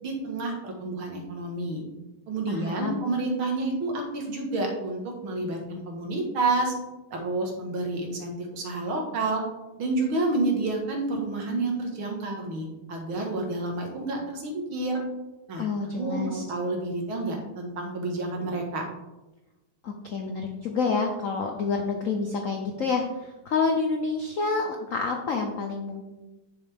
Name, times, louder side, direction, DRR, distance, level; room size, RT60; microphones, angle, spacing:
voice 1, 0.0-1.8 2.3-6.7 7.1-9.4 9.8-15.0 15.5-15.7 15.9-18.9, right 2 dB, 70° right, 2 dB, 2.3 m, -29 dB
voice 2, 2.5-3.0 15.6-16.4 19.8-26.1, left 4 dB, 65° left, 3 dB, 0.8 m, -28 dB
10.5 x 6.4 x 3.6 m, 1.0 s
omnidirectional pair, 2.4 m